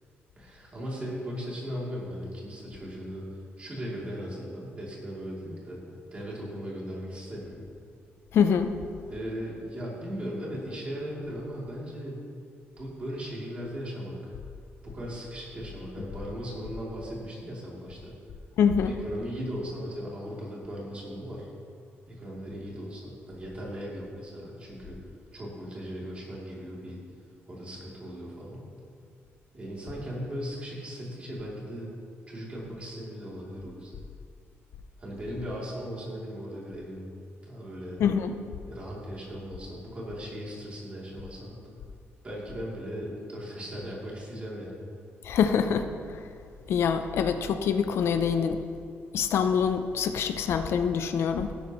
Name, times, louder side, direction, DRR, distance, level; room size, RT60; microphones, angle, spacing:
voice 1, 0.4-3.2 3.6-5.8 6.1-7.6 9.1-12.2 12.8-14.3 14.8-18.1 18.8-21.5 22.1-25.0 25.3-27.0 27.5-28.6 29.5-31.9 32.3-34.0 35.0-37.1 37.4-38.0 38.6-41.5 42.2-44.7, equal, 25° right, -5 dB, 3.1 m, -38 dB
voice 2, 8.3-8.7 18.6-18.9 38.0-38.3 45.2-46.2 46.7-48.6 49.1-51.5, left 7 dB, 65° left, 8 dB, 0.6 m, -25 dB
16.0 x 11.5 x 3.2 m, 2.3 s
cardioid pair, 160°, 5 cm